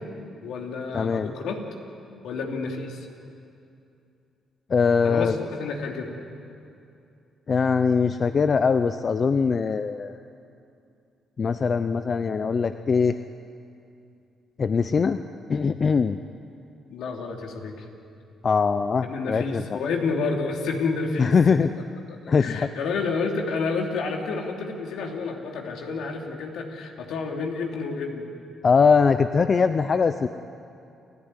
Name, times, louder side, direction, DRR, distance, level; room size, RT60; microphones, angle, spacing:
voice 1, 0.4-1.6 2.2-3.0 5.0-6.2 16.9-17.8 19.1-21.3 22.1-28.3, left 4 dB, 80° left, 2 dB, 3.0 m, -30 dB
voice 2, 0.9-1.3 4.7-5.5 7.5-10.2 11.4-13.2 14.6-15.2 15.5-16.2 18.4-19.8 21.2-21.7 22.3-22.7 28.6-30.3, left 5 dB, 40° left, 10 dB, 0.7 m, -22 dB
29.0 x 14.0 x 9.9 m, 2.6 s
cardioid pair, 90°, 0 cm